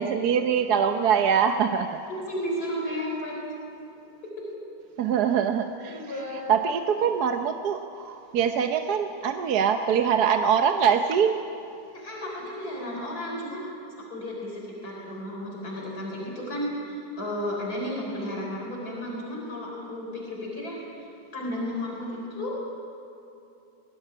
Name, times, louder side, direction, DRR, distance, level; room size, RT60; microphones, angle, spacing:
voice 1, 0.0-2.0 5.0-6.1 6.5-11.4, right 7 dB, 75° right, 6 dB, 1.4 m, -23 dB
voice 2, 2.3-3.4 4.2-4.4 5.9-6.6 11.9-13.6 13.9-20.8 21.3-22.5, left 1 dB, 70° left, -2 dB, 4.7 m, -33 dB
21.0 x 17.0 x 10.0 m, 2.8 s
omnidirectional pair, 1.7 m